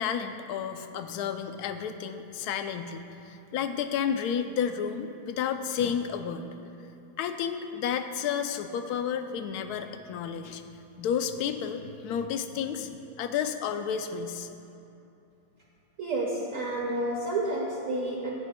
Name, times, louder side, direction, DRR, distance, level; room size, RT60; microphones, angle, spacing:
voice 1, 0.0-6.5 7.2-10.6 11.0-14.5, left 7 dB, 75° left, 8 dB, 1.1 m, -31 dB
voice 2, 16.0-18.3, right 2 dB, 55° right, -2 dB, 1.5 m, -30 dB
17.0 x 11.5 x 2.2 m, 2.8 s
omnidirectional pair, 1.8 m